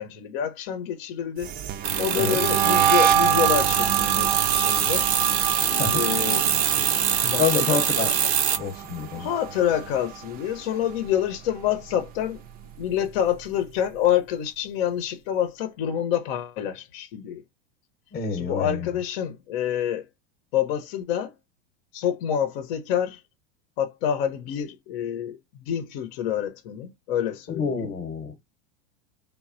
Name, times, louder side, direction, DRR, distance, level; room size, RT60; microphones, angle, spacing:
voice 1, 0.0-1.5 2.0-5.1 5.9-6.5 7.2-7.8 9.1-12.4 12.8-17.4 18.3-20.0 20.5-21.3 21.9-23.2 23.8-27.9, left 10 dB, 60° left, 0.8 m, -27 dB
sound 1, 1.4-10.6 10.9-11.3 11.6-13.2, right 9 dB, 30° right, 0.4 m, -27 dB
sound 2, 1.8-8.6, right 9 dB, 80° right, 0.8 m, -24 dB
voice 2, 7.4-8.1 8.6-9.3 18.1-18.9 27.5-28.3, left 5 dB, 30° left, 0.9 m, -27 dB
3.2 x 2.2 x 2.5 m
hypercardioid pair, 105°, 32 cm